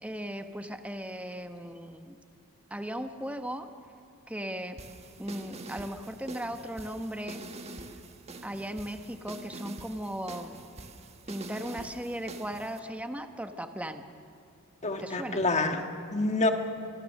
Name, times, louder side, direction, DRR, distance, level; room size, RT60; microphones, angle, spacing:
voice 1, 0.0-2.2 2.7-3.7 4.3-4.8 5.2-7.4 8.4-10.5 11.3-14.1 15.0-15.4, equal, 5° right, 7 dB, 1.1 m, -37 dB
sound 1, 4.8-12.8, right 2 dB, 30° right, 1.4 m, -45 dB
voice 2, 14.8-16.5, left 2 dB, 30° left, 5 dB, 1.6 m, -27 dB
27.0 x 22.0 x 6.5 m, 2.5 s
head